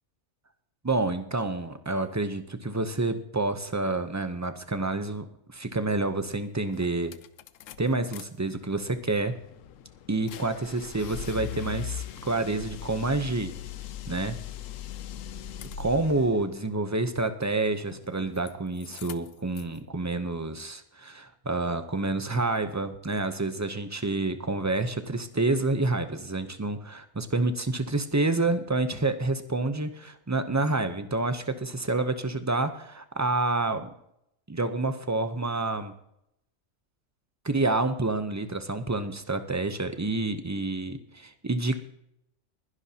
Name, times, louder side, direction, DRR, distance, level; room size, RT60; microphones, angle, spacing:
voice 1, 0.8-7.1 7.8-9.3 10.1-13.5 14.1-14.4 15.8-33.9 34.5-35.9 37.4-41.8, right 2 dB, 20° right, 9 dB, 0.5 m, -28 dB
sound 1, 6.3-6.4 6.7-8.2 8.6-16.3 17.8-18.5 18.8-19.8, left 9 dB, 80° left, 1.0 m, -40 dB
21.0 x 11.0 x 2.8 m, 0.77 s
omnidirectional pair, 1.3 m